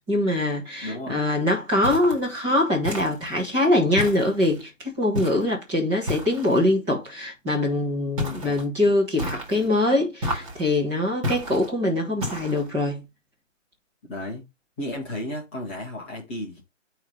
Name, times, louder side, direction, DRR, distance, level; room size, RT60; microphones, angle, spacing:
voice 1, 0.1-13.0, left 1 dB, 10° right, 1.5 m, -23 dB
voice 2, 0.8-1.2 8.3-8.7 14.0-14.4 14.8-16.6, left 1 dB, 10° left, 1.1 m, -34 dB
sound 1, 1.8-2.3 2.8-3.4 4.0-4.6 5.1-5.5 6.1-6.6 8.2-8.7 9.2-9.7 10.2-10.7 11.2-11.7 12.2-12.7, left 1 dB, 25° right, 2.1 m, -31 dB
9.5 x 3.2 x 4.9 m
hypercardioid pair, 170°, 37 cm